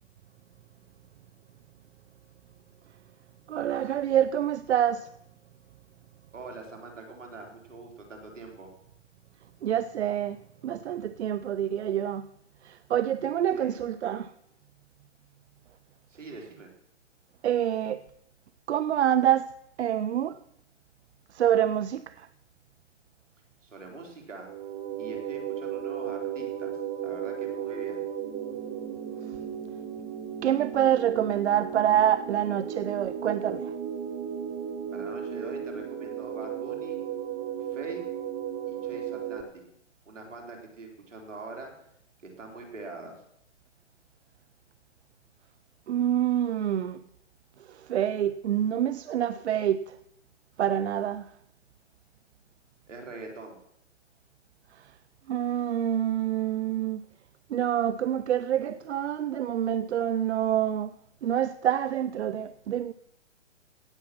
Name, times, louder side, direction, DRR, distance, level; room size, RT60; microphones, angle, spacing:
voice 1, 3.5-5.1 9.6-10.4 10.6-12.3 12.6-14.3 17.4-18.0 18.7-19.5 19.8-20.4 21.3-22.3 30.4-33.7 45.9-47.0 47.7-50.0 50.6-51.3 55.3-57.0 57.5-60.9 61.2-62.9, right 10 dB, 65° right, 0.6 m, -26 dB
voice 2, 6.3-8.7 13.5-13.7 16.1-16.7 23.6-24.5 25.0-28.0 34.9-37.0 37.7-38.0 38.7-39.6 40.1-41.7 42.2-43.2 52.9-53.6, right 3 dB, 80° right, 4.1 m, -43 dB
sound 1, 24.4-39.4, right 8 dB, 20° right, 1.4 m, -35 dB
17.0 x 7.0 x 6.0 m
hypercardioid pair, 145°, 37 cm